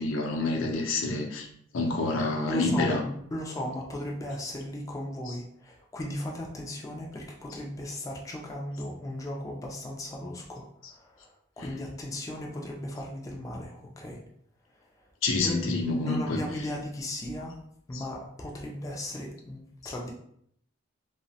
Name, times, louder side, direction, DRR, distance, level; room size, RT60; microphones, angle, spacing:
voice 1, 0.0-1.5 1.7-3.0 5.3-5.4 7.5-7.6 10.8-10.9 11.6-11.7 15.2-16.7 17.9-18.0 19.8-20.0, left 3 dB, 80° left, 1 dB, 0.5 m, -28 dB
voice 2, 2.5-11.3 11.6-14.2 15.3-17.6 17.9-20.1, left 1 dB, 15° left, -1 dB, 0.3 m, -36 dB
2.8 x 2.1 x 2.7 m, 0.68 s
head